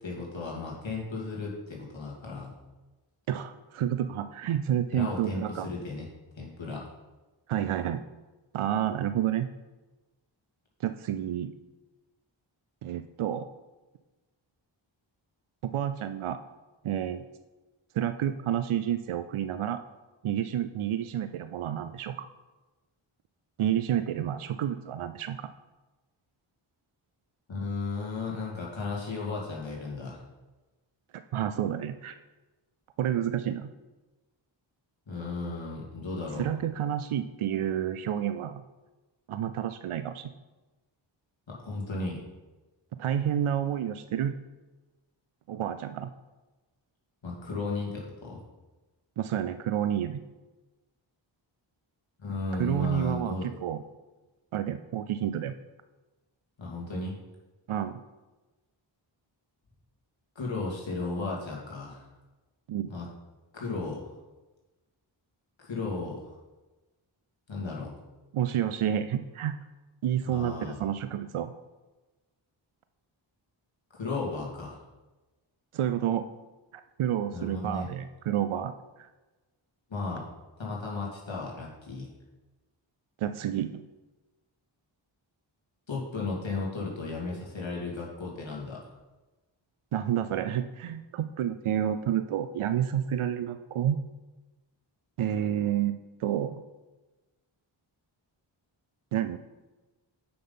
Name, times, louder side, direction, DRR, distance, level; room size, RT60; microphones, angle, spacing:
voice 1, 0.0-2.5 4.9-6.1 6.4-6.9 27.5-30.2 35.1-36.5 41.5-42.2 47.2-48.4 52.2-53.5 56.6-57.1 60.4-62.0 62.9-63.1 63.5-64.1 65.6-66.3 67.5-67.9 70.3-70.8 73.9-74.8 77.3-77.9 79.9-80.3 80.6-82.1 85.9-88.9, left 3 dB, 65° left, -3 dB, 2.5 m, -35 dB
voice 2, 3.3-5.7 7.5-8.0 8.5-9.5 10.8-11.5 12.8-13.5 15.6-16.4 16.8-17.2 17.9-19.8 20.2-22.3 23.6-25.5 31.3-32.1 33.0-33.7 36.4-38.6 39.3-40.3 43.0-44.3 45.5-46.1 49.2-50.2 52.6-53.8 54.5-55.5 57.7-58.0 62.7-62.9 68.3-69.6 70.0-71.5 75.7-76.2 77.0-78.7 79.0-79.1 83.2-83.8 89.9-94.0 95.2-96.6 99.1-99.4, right 10 dB, 90° right, 11 dB, 0.5 m, -29 dB
7.7 x 5.7 x 5.5 m, 1.1 s
cardioid pair, 50°, 48 cm